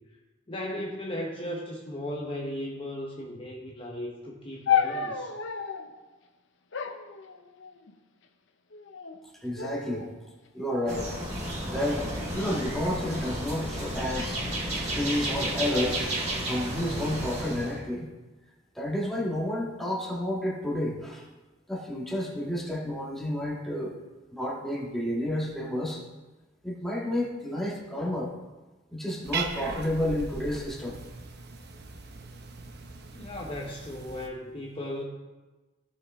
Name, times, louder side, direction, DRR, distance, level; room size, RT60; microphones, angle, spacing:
voice 1, 0.5-5.3 33.1-35.0, left 1 dB, 25° left, -2 dB, 1.0 m, -36 dB
sound 1, 4.7-5.9 6.7-7.9 8.7-9.2 9.6-10.1 10.8-12.1 12.9-13.3, left 8 dB, 65° left, 0.7 m, -32 dB
voice 2, 9.4-10.1 10.5-11.1 11.6-14.4 14.7-16.1 16.5-18.1 18.8-21.2 21.7-24.0 24.3-26.0 26.6-28.3 28.9-31.0, left 1 dB, ahead, -4 dB, 1.7 m, -30 dB
sound 2, 10.9-17.8, right 1 dB, 35° right, 3.1 m, -32 dB
Cat, 29.2-34.3, right 4 dB, 55° right, 1.0 m, -39 dB
16.0 x 5.9 x 3.6 m, 1.2 s
head